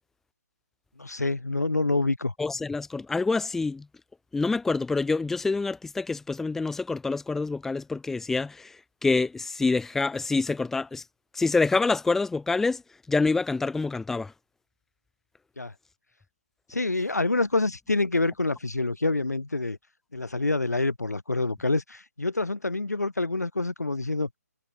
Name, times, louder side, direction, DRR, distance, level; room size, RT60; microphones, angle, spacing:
voice 1, 1.0-2.3 15.6-15.7 16.7-19.8 20.1-24.3, left 2 dB, 85° left, 4.1 m, -27 dB
voice 2, 2.4-3.8 4.3-8.7 9.0-11.0 11.3-12.8 13.1-14.3, left 3 dB, 5° left, 2.6 m, -26 dB
figure-of-eight pair, 150°, 9 cm